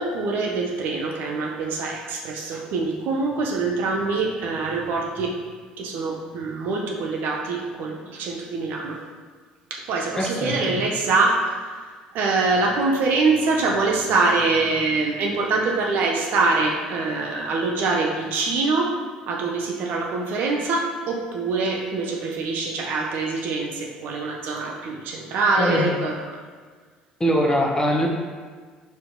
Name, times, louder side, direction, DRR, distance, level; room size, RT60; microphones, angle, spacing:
voice 1, 0.0-5.4 5.8-9.0 9.7-11.8 12.1-19.0 19.3-26.4, right 3 dB, 50° right, -1 dB, 0.5 m, -24 dB
voice 2, 10.2-10.8 25.6-25.9 27.2-28.1, equal, 15° left, -1 dB, 0.6 m, -22 dB
5.4 x 2.8 x 2.2 m, 1.5 s
figure-of-eight pair, 55°, 4 cm